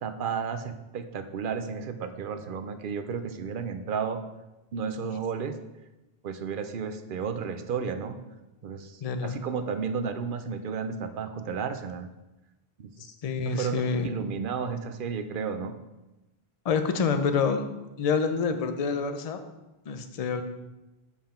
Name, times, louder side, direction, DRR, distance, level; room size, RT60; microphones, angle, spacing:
voice 1, 0.0-4.2 4.7-5.5 6.2-8.2 8.6-12.1 12.8-13.1 13.4-15.7, right 6 dB, 60° right, 9 dB, 0.7 m, -33 dB
voice 2, 9.0-9.4 13.2-14.1 16.6-17.7 18.0-19.4 19.9-20.4, left 5 dB, 45° left, 8 dB, 0.6 m, -27 dB
7.2 x 5.6 x 4.3 m, 1.0 s
omnidirectional pair, 1.1 m